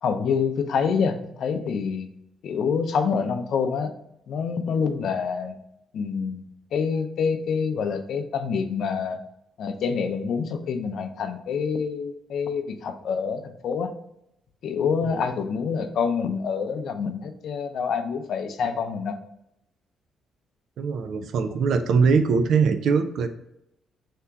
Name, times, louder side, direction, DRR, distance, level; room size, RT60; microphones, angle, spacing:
voice 1, 0.0-2.1 2.4-3.9 4.3-5.6 5.9-6.4 6.7-9.2 9.6-13.9 14.6-19.2, left 6 dB, 65° left, 8 dB, 0.5 m, -26 dB
voice 2, 20.8-23.3, right 5 dB, 70° right, 8 dB, 0.4 m, -22 dB
3.5 x 2.8 x 4.6 m, 0.79 s
cardioid pair, 90°, 0 cm